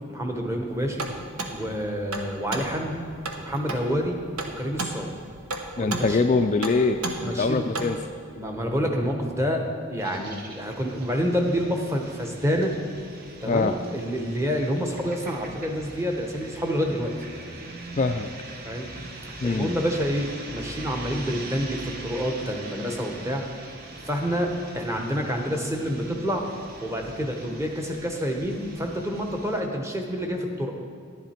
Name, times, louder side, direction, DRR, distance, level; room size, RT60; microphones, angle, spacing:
voice 1, 0.1-1.1 1.5-3.0 3.4-4.2 4.6-5.1 5.8-6.2 7.2-7.6 8.4-9.6 9.9-12.7 13.4-17.1 18.6-18.9 19.4-23.4 24.1-26.4 26.8-30.7, equal, 15° right, 2 dB, 1.0 m, -28 dB
sound 1, 0.7-8.1, right 2 dB, 85° right, 1.1 m, -35 dB
voice 2, 5.8-8.0 13.5-13.7 18.0-18.3 19.4-19.7, left 3 dB, 35° left, 6 dB, 0.3 m, -23 dB
sound 2, 10.0-29.6, right 2 dB, 45° right, 1.0 m, -42 dB
11.0 x 10.5 x 4.4 m, 2.3 s
head